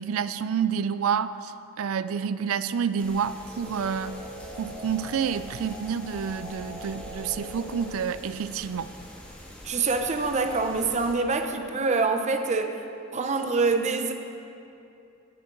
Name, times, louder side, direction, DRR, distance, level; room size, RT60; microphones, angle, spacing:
voice 1, 0.0-4.2 4.6-8.9, right 7 dB, 90° right, 14 dB, 0.4 m, -29 dB
sound 1, 3.0-11.1, equal, 5° left, 1.5 m, -45 dB
sound 2, 3.4-8.3, left 1 dB, 15° right, 1.9 m, -42 dB
voice 2, 9.6-12.8 13.1-14.1, right 4 dB, 35° right, 6 dB, 0.6 m, -25 dB
17.0 x 7.5 x 3.8 m, 2.7 s
head